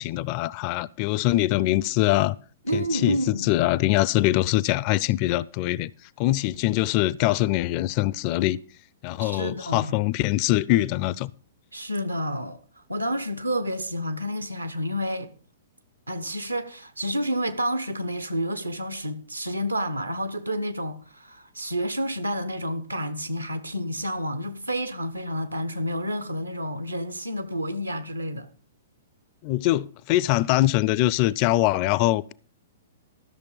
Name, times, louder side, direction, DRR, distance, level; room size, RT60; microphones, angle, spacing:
voice 1, 0.0-2.4 2.7-5.9 6.2-8.6 9.0-11.3 29.4-32.3, left 16 dB, 35° left, 0.4 m, -23 dB
voice 2, 2.6-3.5 9.2-10.0 11.7-12.6 12.9-15.3 16.1-28.5, equal, 85° right, 1.1 m, -29 dB
13.0 x 6.6 x 5.3 m
figure-of-eight pair, 110°, 0 cm